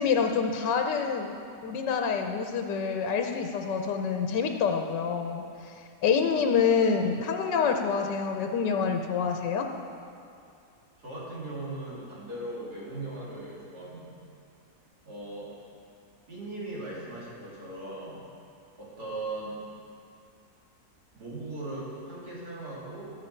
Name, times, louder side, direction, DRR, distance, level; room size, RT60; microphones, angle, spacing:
voice 1, 0.0-1.3 1.6-5.4 6.0-9.7, left 6 dB, 90° left, 4 dB, 1.4 m, -27 dB
voice 2, 11.0-14.2 15.0-15.5 16.3-18.2 18.8-19.6 21.1-23.1, right 2 dB, 65° right, -7 dB, 3.2 m, -38 dB
17.0 x 6.7 x 4.5 m, 2.4 s
omnidirectional pair, 1.8 m